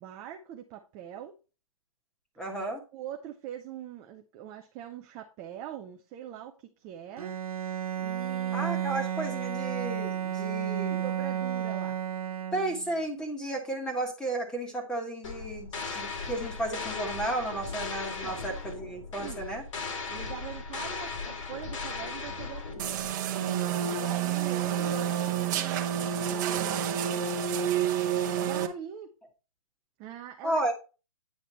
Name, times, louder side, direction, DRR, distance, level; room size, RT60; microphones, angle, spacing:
voice 1, 0.0-1.3 2.9-7.4 8.0-8.7 10.9-12.0 17.8-18.4 19.2-19.4 20.1-22.9 23.8-27.4 28.4-29.1 30.0-30.6, right 10 dB, 15° right, 4 dB, 0.5 m, -43 dB
voice 2, 2.4-2.8 8.5-11.0 12.5-19.6 30.4-30.7, right 1 dB, 5° left, 3 dB, 1.5 m, -33 dB
Bowed string instrument, 7.2-13.0, right 9 dB, 85° right, 1.2 m, -32 dB
sound 1, 15.2-23.1, left 4 dB, 55° left, 2.6 m, -37 dB
sound 2, 22.8-28.7, right 9 dB, 30° right, 1.0 m, -29 dB
9.4 x 4.9 x 4.3 m, 0.31 s
hypercardioid pair, 165°, 18 cm